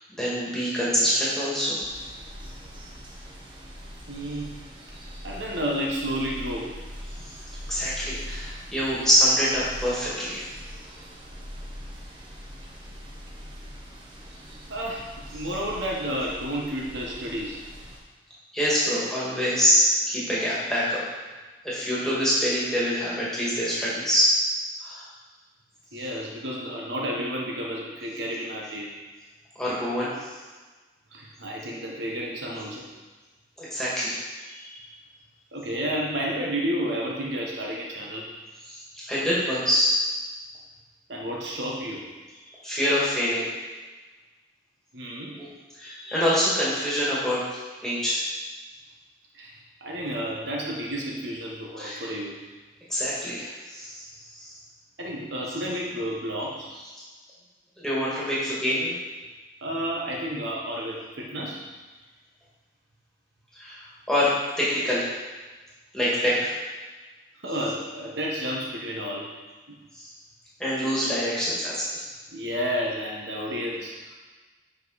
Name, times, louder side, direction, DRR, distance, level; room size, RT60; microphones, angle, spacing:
voice 1, 0.2-1.8 7.7-10.5 18.5-21.0 21.6-24.3 24.8-25.0 29.6-30.3 33.6-34.8 38.7-38.8 39.1-40.0 42.6-43.5 45.4-45.5 45.8-48.2 51.8-52.1 52.9-54.1 54.3-54.5 57.8-58.9 63.5-64.3 64.6-65.1 65.9-66.5 69.9-70.1 70.6-72.0, equal, 5° left, -9 dB, 1.9 m, -25 dB
sound 1, 1.8-18.0, equal, 25° right, 0.9 m, -42 dB
voice 2, 4.1-4.5 5.2-6.7 14.7-15.1 15.3-17.6 25.9-28.9 31.1-32.8 35.5-38.2 41.1-42.0 44.9-45.4 49.3-49.5 49.8-52.3 55.0-56.7 59.6-61.6 67.4-69.3 72.3-73.9, equal, 70° right, -2 dB, 1.3 m, -31 dB
7.3 x 5.2 x 4.1 m, 1.3 s
head